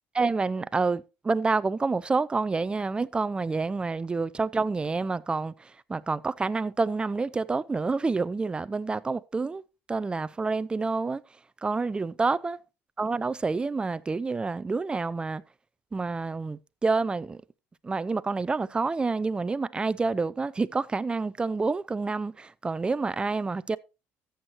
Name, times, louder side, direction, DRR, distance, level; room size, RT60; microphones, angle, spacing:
voice 1, 0.1-9.6 9.9-11.2 11.6-12.6 13.0-15.4 15.9-17.4 17.8-23.8, right 4 dB, 20° right, 0.4 m, -28 dB
14.5 x 8.0 x 2.9 m
cardioid pair, 105°, 5 cm